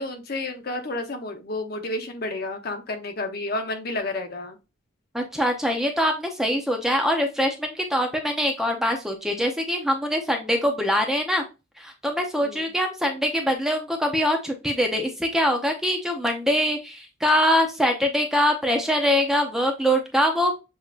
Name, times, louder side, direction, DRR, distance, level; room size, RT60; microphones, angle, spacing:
voice 1, 0.0-4.6 12.4-12.7, left 2 dB, 50° left, 5 dB, 0.8 m, -31 dB
voice 2, 5.1-11.4 11.8-20.5, equal, ahead, 3 dB, 0.7 m, -23 dB
7.2 x 2.8 x 2.4 m, 0.27 s
head